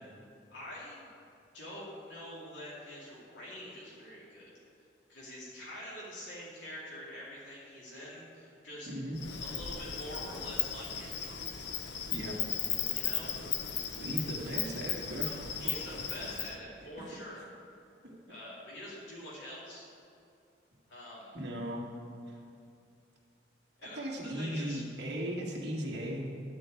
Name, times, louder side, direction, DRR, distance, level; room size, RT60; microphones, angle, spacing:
voice 1, 0.5-1.1 1.5-4.5 5.1-8.9 9.3-11.3 12.9-13.4 15.6-17.4 18.3-19.9 20.9-21.3 23.8-24.8, left 1 dB, 85° left, -7 dB, 2.4 m, -45 dB
voice 2, 8.9-9.2 12.1-12.4 14.0-15.8 16.2-16.3 18.0-18.2 21.3-21.8 23.9-26.3, equal, 60° right, -2 dB, 1.9 m, -37 dB
Insect, 9.2-16.6, left 8 dB, 65° left, 0.7 m, -36 dB
12.5 x 4.6 x 8.5 m, 2.5 s
head